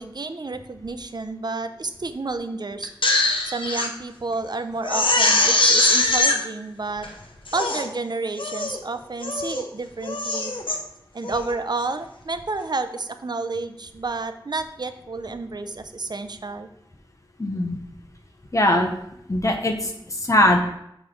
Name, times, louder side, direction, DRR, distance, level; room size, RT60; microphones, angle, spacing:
voice 1, 0.0-2.9 3.4-7.1 7.5-10.5 11.1-16.7, right 3 dB, 55° right, 9 dB, 0.5 m, -30 dB
Crying sobbing, 2.8-3.9 4.3-4.4 4.8-6.4 7.0-7.1 7.5-7.9 8.4-8.8 9.2-9.6 10.0-10.8 11.2-11.5, left 2 dB, 85° left, 0.8 m, -22 dB
voice 2, 17.4-17.8 18.5-18.9 19.3-20.6, left 1 dB, 40° left, 2 dB, 0.8 m, -20 dB
7.0 x 3.1 x 5.0 m, 0.77 s
wide cardioid pair, 60°, 9 cm